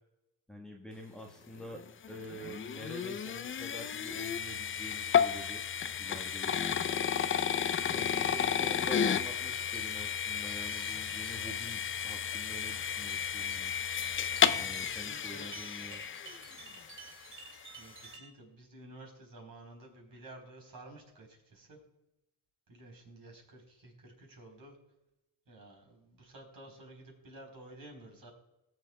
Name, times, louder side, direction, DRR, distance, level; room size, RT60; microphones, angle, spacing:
voice 1, 0.5-1.8 2.1-5.6 6.0-6.6 7.9-13.7 14.5-16.0, equal, ahead, -1 dB, 1.2 m, -47 dB
sound 1, 1.7-16.9, left 8 dB, 30° left, 0.5 m, -32 dB
sound 2, 9.5-18.3, right 3 dB, 25° right, 2.7 m, -52 dB
voice 2, 14.4-15.5 17.7-21.8 22.7-24.8 25.5-28.3, right 2 dB, 45° right, 2 dB, 4.0 m, -52 dB
18.0 x 7.6 x 2.3 m, 0.92 s
supercardioid pair, 75°, 46 cm